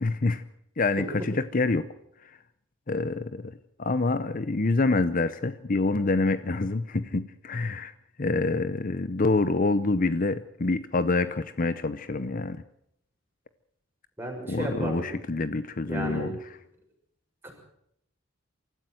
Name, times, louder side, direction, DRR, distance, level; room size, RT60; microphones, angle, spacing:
voice 1, 0.0-0.4 0.8-1.9 2.9-3.5 3.8-7.9 8.2-12.6 14.5-16.4, left 3 dB, 45° left, 13 dB, 0.7 m, -26 dB
voice 2, 14.2-15.1 15.9-16.3 17.4-17.5, equal, 10° right, 0 dB, 6.5 m, -33 dB
24.5 x 14.0 x 7.7 m, 0.74 s
head